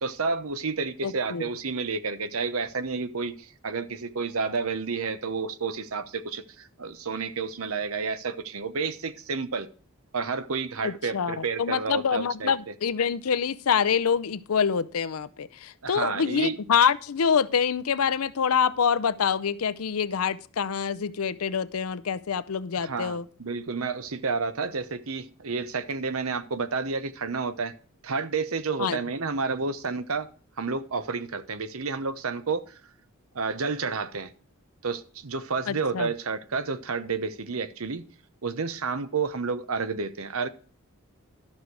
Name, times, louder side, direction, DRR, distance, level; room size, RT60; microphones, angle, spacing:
voice 1, 0.0-9.7 10.1-12.7 15.8-16.6 22.8-27.7 28.0-30.3 30.6-32.8 33.3-34.3 34.8-38.0 38.4-40.5, right 4 dB, 80° right, 0.9 m, -30 dB
voice 2, 1.0-1.4 10.8-23.3 28.8-29.0 35.7-36.1, left 7 dB, 85° left, 0.6 m, -26 dB
12.5 x 6.3 x 4.7 m
head